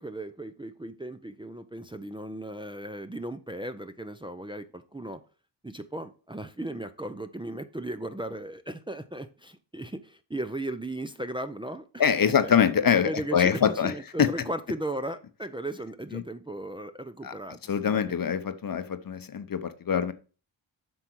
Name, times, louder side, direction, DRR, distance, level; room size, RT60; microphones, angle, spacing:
voice 1, 0.0-5.2 5.6-12.5 13.0-18.2, right 1 dB, 10° right, 0.6 m, -36 dB
voice 2, 12.0-13.9 14.2-14.3 16.1-16.2 17.2-17.3 17.7-20.1, left 7 dB, 45° left, 0.9 m, -24 dB
7.9 x 5.8 x 4.6 m
cardioid pair, 75°, 47 cm